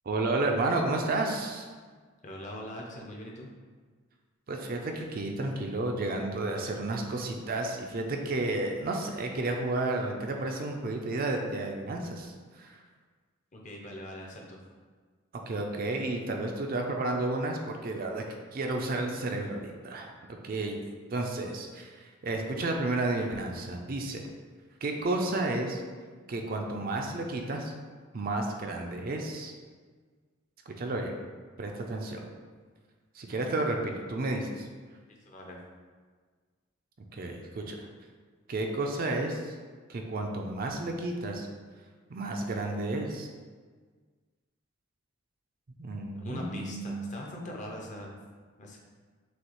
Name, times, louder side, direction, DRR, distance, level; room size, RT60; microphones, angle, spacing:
voice 1, 0.1-1.7 4.5-12.8 15.5-18.2 18.5-20.1 20.4-20.8 21.1-24.2 24.8-25.8 26.3-27.7 28.1-29.5 30.7-31.1 31.6-32.2 33.1-34.7 37.1-37.9 38.5-39.6 39.9-41.5 42.1-43.3 45.8-47.1, right 2 dB, 45° right, 2 dB, 0.4 m, -32 dB
voice 2, 2.2-3.5 13.5-14.6 35.1-35.6 46.2-48.2 48.6-48.8, left 1 dB, 35° left, -1 dB, 0.6 m, -41 dB
6.2 x 2.4 x 3.0 m, 1.5 s
head